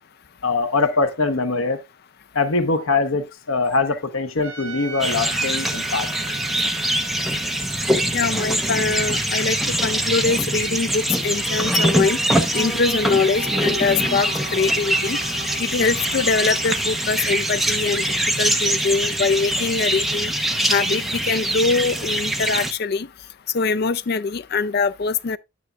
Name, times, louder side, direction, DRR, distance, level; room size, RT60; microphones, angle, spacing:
voice 1, 0.4-1.8 2.3-6.1, left 3 dB, 85° left, 1.1 m, -22 dB
Trumpet, 4.4-9.6, right 4 dB, 75° right, 3.2 m, -38 dB
sound 1, 5.0-22.7, right 1 dB, ahead, 0.9 m, -23 dB
voice 2, 8.1-12.2 12.5-15.2 15.6-20.3 20.7-23.1 23.5-25.4, left 4 dB, 50° left, 0.4 m, -23 dB
sound 2, 13.0-18.3, left 1 dB, 50° right, 3.1 m, -38 dB
11.0 x 9.7 x 2.4 m
head